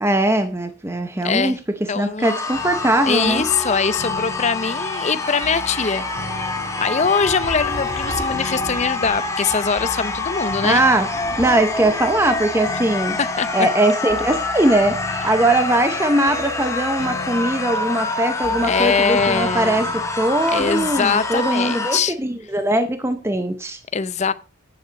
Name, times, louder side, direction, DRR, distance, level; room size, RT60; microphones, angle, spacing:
voice 1, 0.0-1.6 1.9-3.4 10.6-11.1 11.4-13.2 13.5-23.8, right 1 dB, 15° right, 0.7 m, -20 dB
voice 2, 1.2-1.6 1.9-2.4 3.1-6.0 6.8-10.8 13.4-13.7 15.3-15.4 18.6-20.1 20.5-22.1 23.9-24.3, left 5 dB, 35° left, 0.6 m, -22 dB
sound 1, 2.2-22.0, left 3 dB, 15° left, 1.2 m, -26 dB
sound 2, 2.5-21.4, left 3 dB, 85° left, 2.4 m, -36 dB
Thunder / Rain, 5.2-13.7 14.0-14.2 14.6-14.8, equal, 70° right, 3.4 m, -38 dB
9.5 x 7.5 x 5.2 m
head